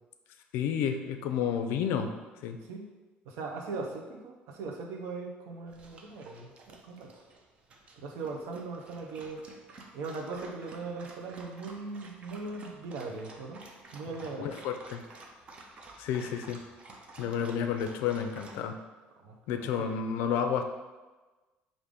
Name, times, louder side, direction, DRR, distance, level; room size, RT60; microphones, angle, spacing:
voice 1, 0.5-2.1 2.4-2.6 14.4-15.0 16.0-16.6 17.2-18.7 19.5-20.6, left 8 dB, 75° left, 7 dB, 0.4 m, -30 dB
voice 2, 3.3-7.1 8.0-9.5 9.9-13.7 13.9-14.5 19.2-19.9, right 3 dB, 80° right, 1 dB, 0.6 m, -39 dB
Dog, 5.7-18.6, right 2 dB, 30° right, 0.4 m, -52 dB
5.0 x 2.5 x 3.6 m, 1.2 s
cardioid pair, 180°, 4 cm